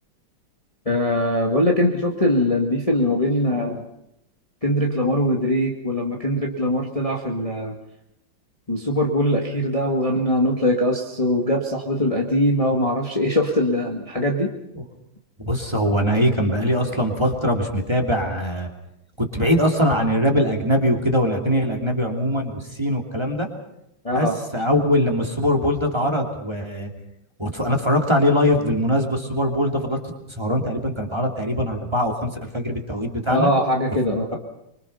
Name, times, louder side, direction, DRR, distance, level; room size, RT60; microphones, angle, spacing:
voice 1, 0.9-3.8 4.6-7.7 8.7-14.5 24.0-24.4 33.3-34.3, left 1 dB, 15° left, 0 dB, 2.0 m, -21 dB
voice 2, 15.4-18.7 19.2-23.5 24.1-26.9 27.4-30.0 30.3-33.5 34.1-34.4, equal, 15° right, 2 dB, 3.0 m, -22 dB
25.0 x 24.5 x 5.7 m, 0.81 s
omnidirectional pair, 2.2 m